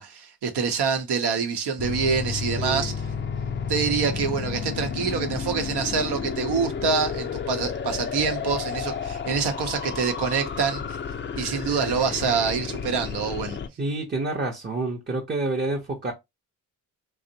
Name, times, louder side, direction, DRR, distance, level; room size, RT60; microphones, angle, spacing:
voice 1, 0.0-2.9 3.7-10.8 11.4-13.6, right 5 dB, 70° right, 0.7 m, -26 dB
sound 1, 1.8-13.7, left 6 dB, 30° left, 0.4 m, -31 dB
voice 2, 2.6-3.0 13.8-16.1, right 2 dB, 25° right, 0.6 m, -28 dB
2.6 x 2.0 x 2.6 m
supercardioid pair, 55°, 41 cm